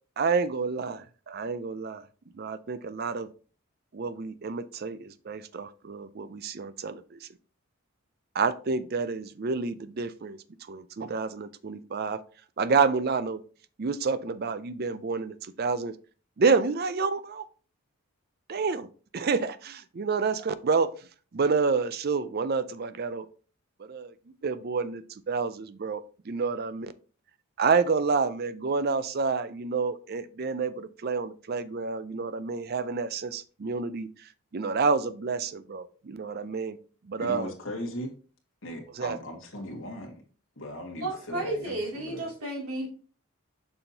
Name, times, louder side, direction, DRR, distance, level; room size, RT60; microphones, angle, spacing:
voice 1, 0.2-2.1 2.3-3.3 3.9-7.3 8.3-10.4 10.7-12.2 12.6-13.4 13.8-16.0 16.4-17.5 18.5-18.9 19.1-23.3 23.8-24.1 24.4-26.9 27.6-36.8 37.0-37.5 39.0-39.2, right 4 dB, 45° right, 0.4 m, -29 dB
voice 2, 37.2-38.1 38.6-40.2 40.6-42.3, left 1 dB, 65° left, 1.9 m, -38 dB
voice 3, 41.0-42.9, right 2 dB, 90° right, 2.8 m, -32 dB
6.8 x 5.7 x 2.8 m
head